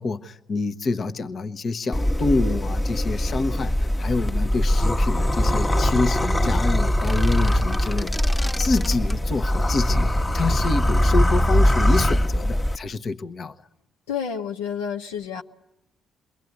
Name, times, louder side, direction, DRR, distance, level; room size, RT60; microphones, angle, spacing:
voice 1, 0.0-10.1 10.3-13.5, left 3 dB, 50° left, 10 dB, 1.2 m, -27 dB
sound 1, 1.9-12.8, equal, 25° left, 1.4 m, -21 dB
sound 2, 6.9-9.2, left 1 dB, 10° left, 1.2 m, -35 dB
voice 2, 14.1-15.4, left 7 dB, 85° left, 2 dB, 1.2 m, -29 dB
28.5 x 22.5 x 9.4 m, 0.87 s
hypercardioid pair, 45°, 0 cm